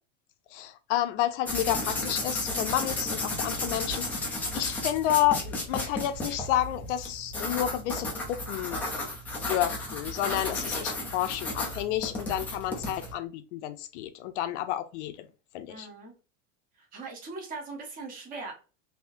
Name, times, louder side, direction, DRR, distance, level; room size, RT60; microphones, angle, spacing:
voice 1, 0.5-4.1 4.5-8.8 9.5-15.3 15.5-15.9, left 12 dB, 60° left, 0.6 m, -30 dB
sound 1, 1.5-13.1, left 2 dB, 5° left, 0.3 m, -33 dB
voice 2, 15.7-16.1 16.8-18.5, right 3 dB, 20° right, 0.9 m, -40 dB
3.5 x 2.7 x 2.5 m
supercardioid pair, 160°, 39 cm